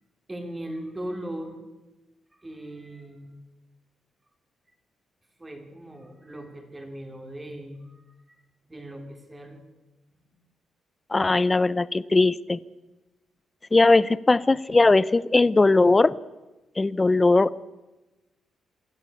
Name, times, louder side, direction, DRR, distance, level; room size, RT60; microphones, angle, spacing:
voice 1, 0.3-1.6 2.3-3.4 5.4-8.4 8.7-9.6 10.3-10.4, right 1 dB, 15° right, 5 dB, 3.4 m, -39 dB
voice 2, 11.1-12.6 13.7-16.1 16.8-17.6, left 3 dB, 20° left, 19 dB, 0.6 m, -19 dB
26.5 x 13.5 x 8.5 m, 1.1 s
cardioid pair, 135°, 0 cm